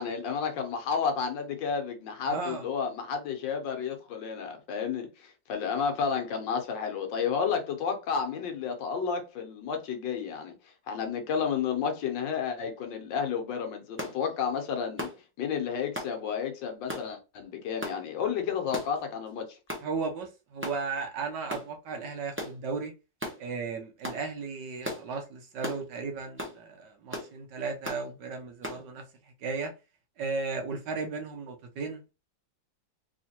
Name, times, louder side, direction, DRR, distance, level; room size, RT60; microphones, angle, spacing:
voice 1, 0.0-10.5 10.9-15.1 15.4-19.6, left 6 dB, 75° left, 1.5 m, -31 dB
voice 2, 2.3-2.6 19.8-22.9 23.4-29.0 29.4-29.7 30.2-32.1, right 4 dB, 70° right, 1.4 m, -35 dB
sound 1, 14.0-14.2 15.0-15.2 15.9-16.1 16.9-17.1 17.8-18.0 18.7-19.0 19.7-19.9 20.6-20.8 21.5-21.7 22.4-22.6 23.2-23.4 24.0-24.2 24.8-25.0 25.6-25.8 26.4-26.6 27.1-27.3 27.8-28.0 28.6-28.8, left 1 dB, 15° right, 0.4 m, -36 dB
3.5 x 3.2 x 2.8 m
omnidirectional pair, 2.1 m